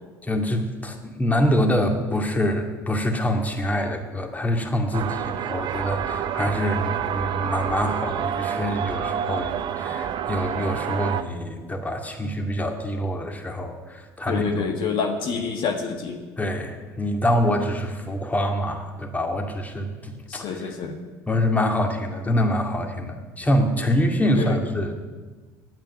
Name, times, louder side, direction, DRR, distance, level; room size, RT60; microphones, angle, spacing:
voice 1, 0.2-14.6 16.4-20.7 21.3-24.9, equal, 15° left, 3 dB, 2.2 m, -25 dB
sound 1, 4.9-11.2, right 9 dB, 55° right, 0.9 m, -28 dB
voice 2, 14.3-16.2 20.3-21.0 24.3-24.6, left 5 dB, 60° left, 4 dB, 1.4 m, -27 dB
9.1 x 8.9 x 9.1 m, 1.3 s
hypercardioid pair, 70°, 10 cm